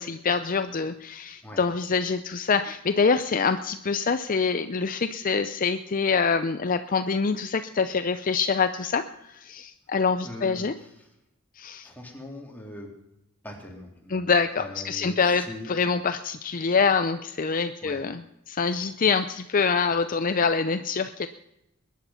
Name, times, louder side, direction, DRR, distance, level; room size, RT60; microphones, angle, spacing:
voice 1, 0.0-10.7 11.6-11.9 14.1-18.2 18.5-21.3, left 5 dB, 40° left, 10 dB, 0.6 m, -25 dB
voice 2, 10.2-11.1 11.8-12.9 13.4-14.2 14.6-15.7 17.8-18.0, left 1 dB, 10° left, 0 dB, 3.3 m, -41 dB
21.5 x 10.5 x 5.7 m, 0.89 s
head